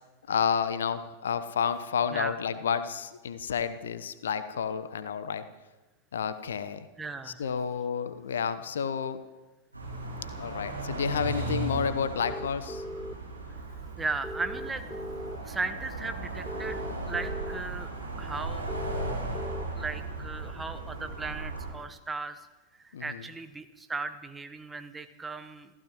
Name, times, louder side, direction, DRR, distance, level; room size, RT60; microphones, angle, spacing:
voice 1, 0.3-5.4 6.1-6.9 7.2-9.2 10.4-12.8 22.9-23.3, left 7 dB, 65° left, 13 dB, 0.9 m, -30 dB
voice 2, 7.0-7.4 14.0-14.9 15.4-17.9 18.2-18.7 19.7-22.4 22.8-25.7, right 3 dB, 10° right, 9 dB, 1.1 m, -36 dB
sound 1, 9.7-21.7, right 2 dB, 85° right, 5.5 m, -36 dB
sound 2, 12.2-13.1 14.2-15.4 16.5-17.6 18.7-19.7, equal, 5° left, 0.5 m, -39 dB
28.0 x 15.0 x 3.1 m, 1.1 s
figure-of-eight pair, 90°, 0 cm